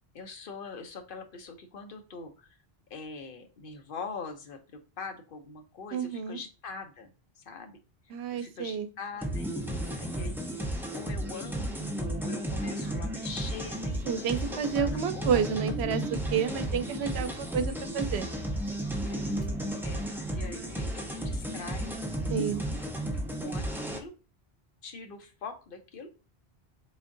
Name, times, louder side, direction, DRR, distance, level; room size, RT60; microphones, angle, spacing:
voice 1, 0.1-2.6 2.9-7.8 8.3-15.7 19.1-19.3 19.8-21.9 23.4-24.1 24.8-26.1, left 4 dB, 60° left, 6 dB, 0.8 m, -43 dB
voice 2, 5.9-6.4 8.1-8.9 14.0-18.3 22.3-22.6, right 7 dB, 85° right, 10 dB, 0.8 m, -30 dB
sound 1, 9.2-24.0, right 1 dB, 5° right, 0.5 m, -33 dB
sound 2, 13.2-24.1, left 1 dB, 90° left, 1.3 m, -52 dB
3.8 x 3.5 x 2.5 m, 0.34 s
omnidirectional pair, 1.1 m